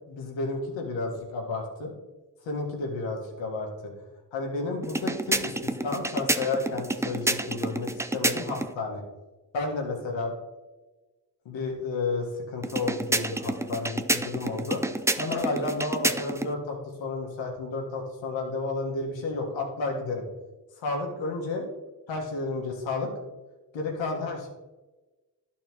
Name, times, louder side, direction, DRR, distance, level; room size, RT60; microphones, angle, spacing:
voice 1, 0.1-1.9 2.4-3.9 4.3-9.0 9.5-10.3 11.4-14.8 15.2-20.2 20.8-21.7 22.1-23.1 23.7-24.5, left 3 dB, 80° left, 1 dB, 1.7 m, -31 dB
sound 1, 4.8-8.7 12.6-16.5, right 1 dB, 5° right, 0.5 m, -29 dB
12.0 x 4.4 x 3.0 m, 1.2 s
supercardioid pair, 40°, 45 cm